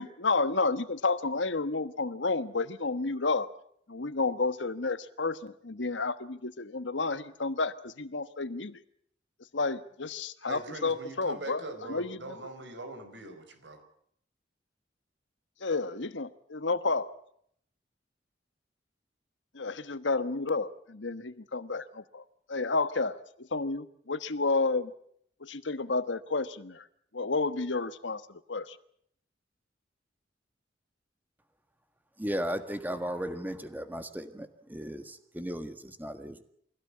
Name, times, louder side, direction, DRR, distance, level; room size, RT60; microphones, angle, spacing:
voice 1, 0.0-3.5 3.9-8.8 9.5-11.6 11.9-12.4 15.6-17.1 19.5-24.9 25.4-26.9 27.1-28.8, left 3 dB, 90° left, 12 dB, 1.3 m, -31 dB
voice 2, 10.5-13.8, right 2 dB, 75° right, 7 dB, 4.7 m, -42 dB
voice 3, 32.2-36.4, equal, 10° right, 9 dB, 1.6 m, -36 dB
24.0 x 16.5 x 8.5 m, 0.68 s
head